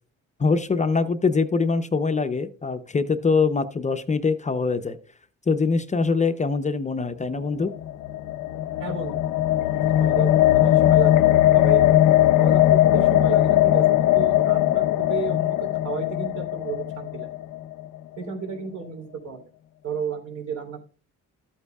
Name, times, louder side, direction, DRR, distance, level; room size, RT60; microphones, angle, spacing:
voice 1, 0.4-5.0 5.5-7.7, left 4 dB, 25° left, 9 dB, 0.6 m, -23 dB
sound 1, 7.6-17.8, left 13 dB, 80° left, 0.6 m, -19 dB
voice 2, 8.8-9.2 9.5-11.8 12.4-17.3 18.2-19.5 19.8-20.8, right 6 dB, 70° right, 3 dB, 3.3 m, -33 dB
13.5 x 8.2 x 2.3 m, 0.38 s
cardioid pair, 105°, 31 cm